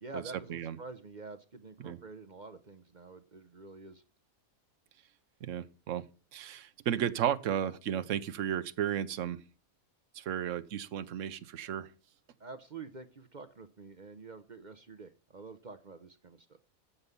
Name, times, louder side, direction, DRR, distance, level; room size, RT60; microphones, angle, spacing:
voice 1, 0.0-4.0 12.4-16.6, right 3 dB, 40° right, 0.9 m, -47 dB
voice 2, 5.4-6.0 6.3-9.4 10.1-11.9, right 9 dB, 65° right, 1.1 m, -34 dB
14.0 x 5.6 x 6.9 m
omnidirectional pair, 1.4 m